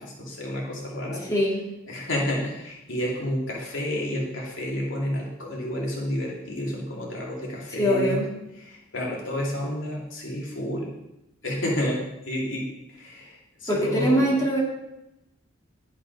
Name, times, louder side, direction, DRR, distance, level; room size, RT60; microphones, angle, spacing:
voice 1, 0.0-1.2 1.9-8.2 8.6-10.9 11.4-14.4, left 1 dB, 75° left, -3 dB, 2.4 m, -30 dB
voice 2, 7.8-8.3 13.7-14.6, equal, 15° left, -4 dB, 2.1 m, -22 dB
11.0 x 5.6 x 5.2 m, 0.90 s
head